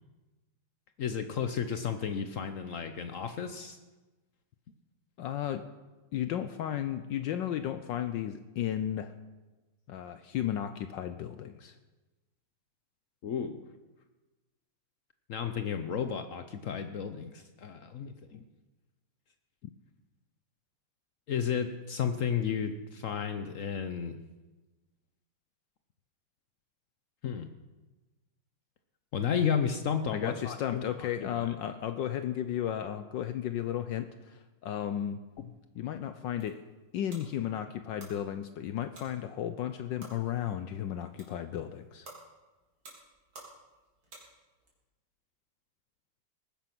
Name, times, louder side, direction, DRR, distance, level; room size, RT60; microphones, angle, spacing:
voice 1, 1.0-3.8 13.2-13.6 15.3-18.4 21.3-24.2 27.2-27.5 29.1-31.5 35.4-35.5, left 7 dB, 85° left, 9 dB, 0.7 m, -33 dB
voice 2, 5.2-5.7 6.1-9.1 9.9-11.7 30.1-35.2 35.7-36.6 36.9-42.1, left 10 dB, 70° left, 11 dB, 1.2 m, -34 dB
sound 1, 36.1-44.7, right 2 dB, 65° right, 4.2 m, -55 dB
19.0 x 10.5 x 6.0 m, 1.2 s
omnidirectional pair, 2.4 m